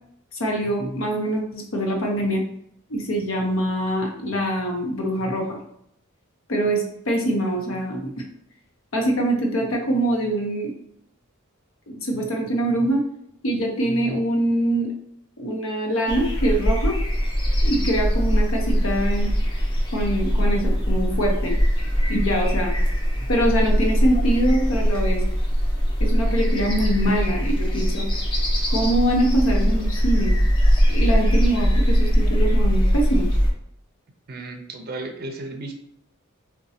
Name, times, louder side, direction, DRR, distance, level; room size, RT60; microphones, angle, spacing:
voice 1, 0.3-2.4 2.9-5.6 6.5-8.1 8.9-10.7 11.9-13.0 13.4-14.9 15.4-17.0 17.6-19.3 19.9-21.5 22.1-22.8 23.3-25.2 26.0-28.1 28.7-30.4 30.9-33.3, right 1 dB, 70° left, 1 dB, 0.7 m, -24 dB
sound 1, 16.1-33.5, equal, 25° left, 0.7 m, -21 dB
voice 2, 34.3-35.7, right 2 dB, 45° right, 4 dB, 0.5 m, -34 dB
3.9 x 2.2 x 2.7 m, 0.73 s
head